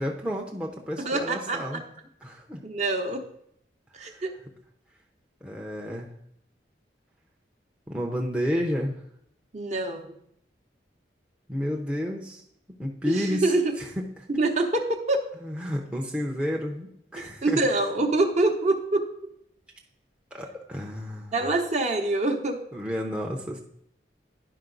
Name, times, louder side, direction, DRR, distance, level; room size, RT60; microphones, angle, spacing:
voice 1, 0.0-1.8 2.2-2.6 4.0-4.2 5.4-6.1 7.9-9.0 11.5-12.4 12.8-13.5 13.8-14.3 15.4-17.6 20.3-21.5 22.7-23.6, equal, 5° right, -2 dB, 0.6 m, -31 dB
voice 2, 1.0-1.8 2.6-3.3 3.9-4.3 9.5-10.2 13.1-13.7 14.3-15.2 17.2-19.0 21.3-22.6, right 2 dB, 40° right, 4 dB, 0.8 m, -25 dB
11.0 x 5.1 x 3.9 m, 0.72 s
head